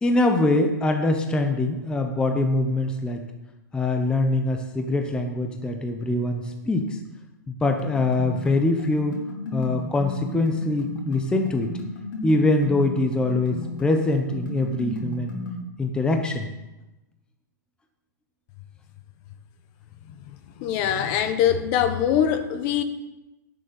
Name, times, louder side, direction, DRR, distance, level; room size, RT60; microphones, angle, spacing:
voice 1, 0.0-3.2 3.7-7.0 7.5-9.2 9.5-11.7 12.2-15.4 15.8-16.5, left 2 dB, 10° left, 4 dB, 0.8 m, -23 dB
sound 1, 7.6-15.6, left 2 dB, 85° left, 3.8 m, -35 dB
voice 2, 20.6-22.8, left 9 dB, 35° left, 10 dB, 1.0 m, -22 dB
10.5 x 6.8 x 6.9 m, 1.0 s
hypercardioid pair, 145°, 11 cm